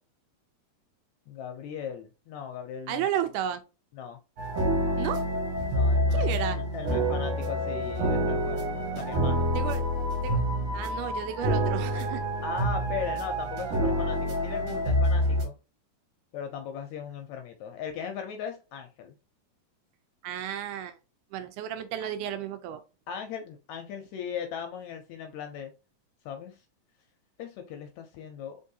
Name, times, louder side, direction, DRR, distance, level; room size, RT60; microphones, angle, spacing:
voice 1, 1.3-3.3 3.9-4.2 5.7-6.3 6.5-8.6 8.9-9.5 12.4-15.6 16.3-19.2 23.1-25.7 26.3-26.6 27.4-28.6, left 7 dB, 80° left, 1.7 m, -38 dB
voice 2, 2.9-3.6 5.0-5.2 6.1-6.6 9.6-9.8 10.2-10.4 10.7-12.2 20.2-21.0 21.3-22.8, right 9 dB, 80° right, 2.1 m, -32 dB
sound 1, 4.4-15.4, equal, 60° right, 2.0 m, -27 dB
4.5 x 3.6 x 2.7 m
omnidirectional pair, 3.6 m